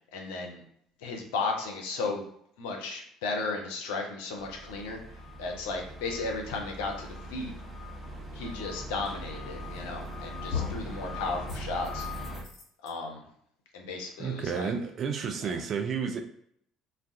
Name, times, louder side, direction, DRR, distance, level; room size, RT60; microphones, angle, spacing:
voice 1, 0.1-0.6 1.0-2.2 2.6-5.0 5.4-7.5 8.3-12.1 12.8-13.2 13.7-14.7 15.4-15.6, left 3 dB, 70° left, 1 dB, 0.5 m, -34 dB
sound 1, 4.4-12.4, left 1 dB, 5° right, 0.8 m, -41 dB
sound 2, 9.7-10.1 10.5-10.9 11.5-12.9, left 7 dB, 50° left, 0.9 m, -37 dB
voice 2, 14.2-16.2, right 6 dB, 45° right, 5 dB, 0.4 m, -31 dB
2.3 x 2.1 x 2.6 m, 0.67 s
figure-of-eight pair, 55°, 0 cm